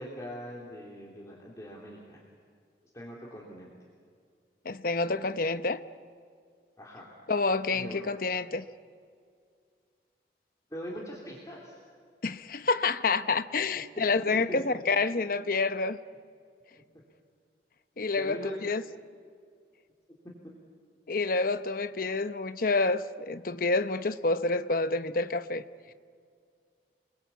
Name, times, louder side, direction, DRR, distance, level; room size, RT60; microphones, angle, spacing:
voice 1, 0.0-2.2 2.9-3.7 6.8-7.2 7.7-8.1 10.7-11.8 14.5-14.8 18.1-18.6, equal, 20° left, 3.2 m, -41 dB
voice 2, 4.6-5.8 7.3-8.6 12.2-16.0 18.0-18.8 21.1-25.6, left 3 dB, 50° left, 0.8 m, -28 dB
29.0 x 21.0 x 8.4 m
head